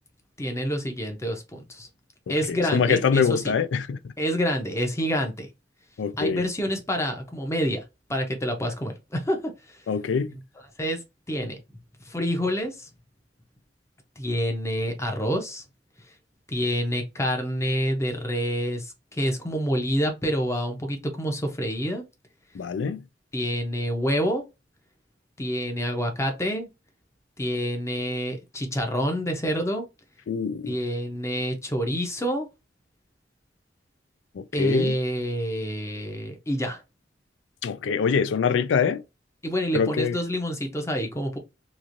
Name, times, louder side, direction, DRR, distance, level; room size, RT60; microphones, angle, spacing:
voice 1, 0.4-1.9 2.3-3.6 4.2-5.5 6.1-7.8 8.1-9.9 10.3-10.4 10.8-11.6 12.0-12.9 14.2-15.6 16.1-16.2 16.5-22.0 23.3-24.4 25.4-26.7 27.4-29.8 30.7-32.5 34.5-36.8 39.4-41.4, equal, 15° left, 0.6 m, -27 dB
voice 2, 2.3-4.0 6.0-6.4 9.9-10.4 22.5-23.0 30.3-30.7 34.4-34.9 37.6-39.0 39.7-40.2, left 6 dB, 80° left, 0.4 m, -24 dB
3.0 x 2.5 x 2.5 m
head